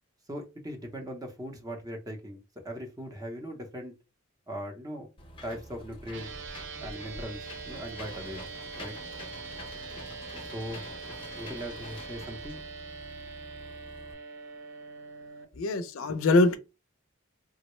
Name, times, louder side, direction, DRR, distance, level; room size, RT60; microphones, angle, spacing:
voice 1, 0.3-3.9 4.5-5.1 5.4-6.3 6.8-8.5 8.8-8.9 10.5-10.8 11.3-12.6, equal, 15° right, 0.6 m, -39 dB
Engine / Mechanisms, 5.2-14.1, left 1 dB, 25° left, 0.6 m, -46 dB
sound 1, 6.1-15.4, right 5 dB, 60° right, 0.5 m, -43 dB
voice 2, 15.6-16.6, left 2 dB, 70° left, 0.4 m, -23 dB
3.7 x 2.1 x 3.0 m
head